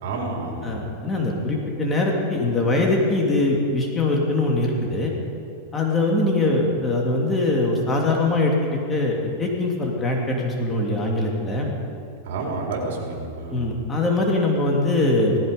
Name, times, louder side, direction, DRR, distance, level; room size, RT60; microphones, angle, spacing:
voice 1, 0.0-0.8 12.2-13.7, right 3 dB, 70° right, -1 dB, 4.2 m, -29 dB
voice 2, 0.6-5.1 5.7-11.7 13.5-15.4, left 2 dB, 15° left, -1 dB, 2.6 m, -22 dB
18.0 x 15.0 x 5.2 m, 2.4 s
supercardioid pair, 140°, 0 cm